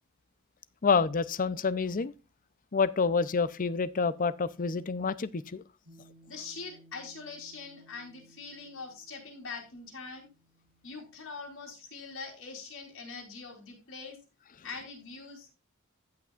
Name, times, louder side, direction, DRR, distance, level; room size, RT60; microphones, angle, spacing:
voice 1, 0.8-2.1 2.7-5.6, left 5 dB, 40° left, 0.6 m, -28 dB
sound 1, 5.9-12.6, right 1 dB, 70° right, 3.8 m, -61 dB
voice 2, 6.3-10.3 10.8-14.2 14.6-15.5, left 4 dB, 65° left, 4.0 m, -43 dB
16.0 x 5.9 x 2.4 m
head